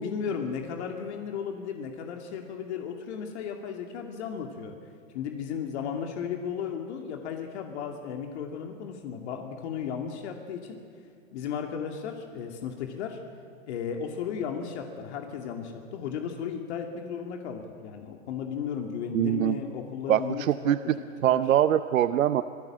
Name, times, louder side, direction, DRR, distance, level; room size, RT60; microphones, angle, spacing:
voice 1, 0.0-4.7 5.1-10.8 11.3-13.2 13.7-20.8 21.3-21.5, left 7 dB, 55° left, 3 dB, 2.5 m, -35 dB
voice 2, 19.1-19.6 20.1-20.9 21.2-22.4, right 11 dB, 80° right, 12 dB, 0.8 m, -23 dB
25.5 x 18.0 x 7.5 m, 2.3 s
hypercardioid pair, 130°, 39 cm